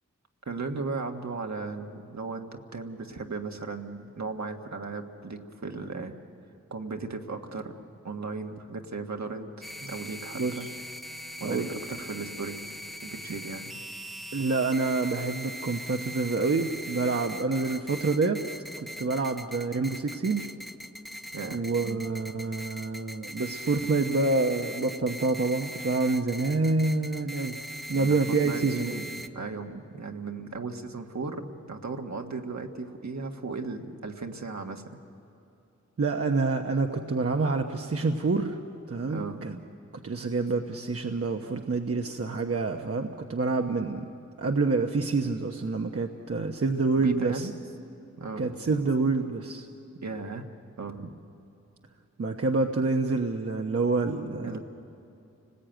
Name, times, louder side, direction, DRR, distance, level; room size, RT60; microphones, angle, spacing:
voice 1, 0.4-6.2 6.7-7.7 8.0-10.7 11.4-12.6 13.0-13.7 21.3-22.1 23.7-23.8 27.9-28.2 28.4-34.8 39.1-39.4 47.0-47.5 48.2-48.5 50.0-50.5 50.8-51.2 54.4-54.6, right 4 dB, 65° right, 4 dB, 1.6 m, -36 dB
sound 1, 9.6-29.3, equal, ahead, 0.9 m, -41 dB
voice 2, 10.3-10.7 11.4-11.7 14.3-18.4 19.0-20.5 21.5-27.6 27.9-29.0 36.0-38.6 38.9-39.6 40.0-44.1 44.4-47.5 48.4-49.7 52.2-54.6, right 3 dB, 50° right, 3 dB, 1.1 m, -27 dB
30.0 x 19.5 x 9.1 m, 2.8 s
wide cardioid pair, 85°, 29 cm